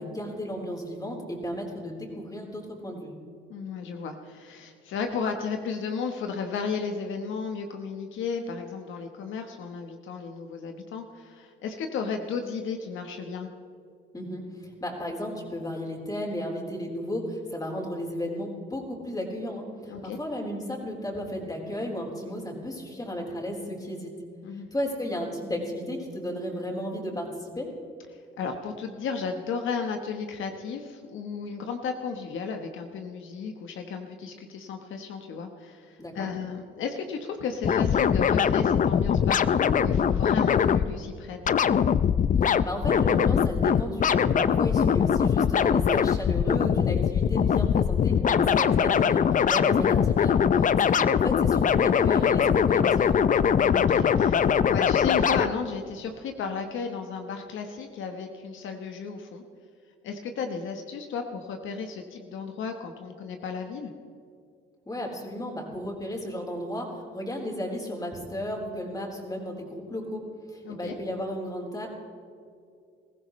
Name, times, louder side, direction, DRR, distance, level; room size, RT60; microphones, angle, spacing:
voice 1, 0.0-3.1 14.1-24.1 24.7-27.7 36.0-36.3 42.4-53.1 64.9-70.2 70.5-71.9, equal, 20° left, 0 dB, 4.0 m, -34 dB
voice 2, 3.5-13.5 19.9-20.2 24.4-24.7 28.4-41.5 50.7-50.9 53.3-59.4 60.0-63.9 70.6-70.9, left 5 dB, 80° left, 5 dB, 1.2 m, -34 dB
sound 1, 37.6-40.9 41.5-55.5, left 7 dB, 40° left, 0.5 m, -22 dB
21.0 x 15.0 x 3.2 m, 2.4 s
cardioid pair, 90°, 20 cm